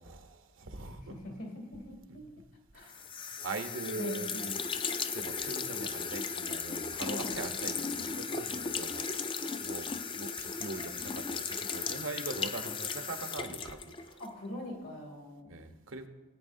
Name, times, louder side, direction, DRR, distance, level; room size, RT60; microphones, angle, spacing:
voice 1, 0.0-1.1 2.7-9.9 10.1-14.2 15.5-16.1, right 3 dB, 80° right, 6 dB, 0.9 m, -42 dB
voice 2, 0.9-2.2 2.7-3.0 3.9-4.3 7.1-7.3 14.2-15.7, left 1 dB, 75° left, -1 dB, 2.7 m, -42 dB
sound 1, 2.9-14.3, left 5 dB, 25° left, 0.4 m, -36 dB
18.5 x 9.0 x 2.7 m, 1.1 s
head